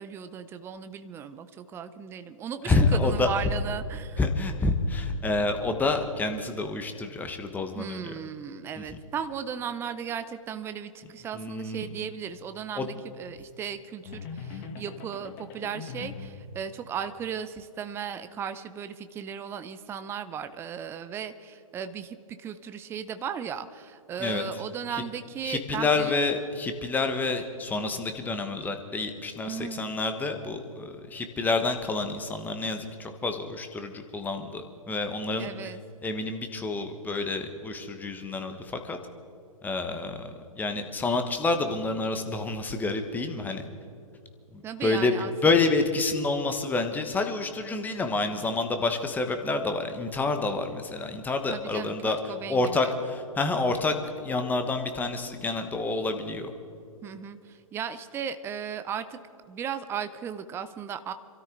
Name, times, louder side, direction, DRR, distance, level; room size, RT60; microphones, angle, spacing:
voice 1, 0.0-4.2 7.7-26.1 29.5-29.8 35.4-35.8 44.6-45.3 51.5-52.9 57.0-59.2 59.5-61.1, right 7 dB, 15° right, 11 dB, 0.6 m, -36 dB
voice 2, 2.6-3.3 4.2-8.1 8.8-8.9 11.3-11.9 12.8-12.9 24.2-24.4 24.9-25.0 25.4-35.5 36.0-39.0 39.6-43.6 44.5-52.2 52.5-53.9 54.2-56.5, left 3 dB, 10° left, 6 dB, 1.2 m, -28 dB
sound 1, 14.0-16.4, left 5 dB, 35° left, 1.6 m, -40 dB
26.5 x 13.5 x 3.9 m, 2.5 s
figure-of-eight pair, 125°, 19 cm